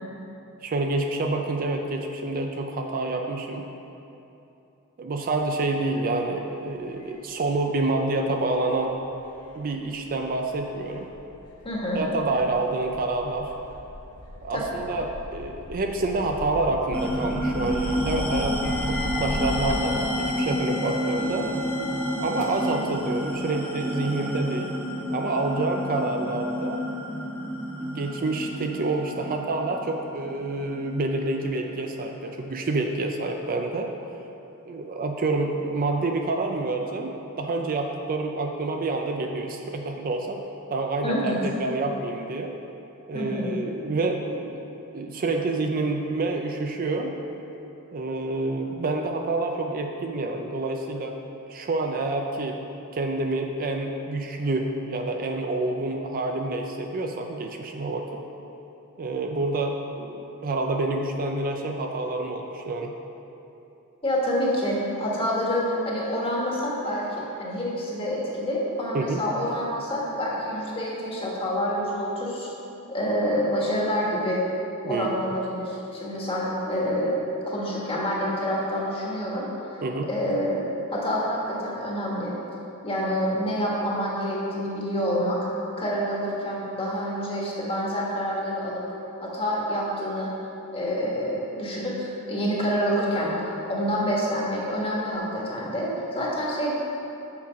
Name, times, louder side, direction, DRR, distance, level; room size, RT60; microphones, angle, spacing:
voice 1, 0.6-3.7 5.0-9.0 9.5-11.1 11.9-13.5 14.4-21.5 22.2-24.7 25.1-26.8 27.8-33.9 34.7-40.4 40.7-42.5 43.1-44.6 44.9-47.2 47.9-51.2 51.5-52.6 52.9-58.2 59.0-62.9 68.9-69.2 74.8-75.4 79.8-80.1, right 2 dB, 40° right, 3 dB, 0.4 m, -28 dB
sound 1, 6.8-23.4, left 1 dB, 80° left, 0.7 m, -39 dB
voice 2, 11.6-12.0 14.5-14.6 41.0-41.4 43.1-43.5 64.0-72.5 72.9-74.4 74.8-77.2 77.5-79.4 80.1-80.6 80.9-82.3 82.8-85.4 85.8-88.8 89.2-90.3 90.7-96.7, equal, 25° left, -5 dB, 1.5 m, -27 dB
sound 2, 16.9-31.8, equal, 5° left, 1.0 m, -30 dB
Wind instrument woodwind instrument, 18.6-22.8, left 4 dB, 50° left, 0.8 m, -39 dB
6.4 x 5.8 x 5.1 m, 2.9 s
head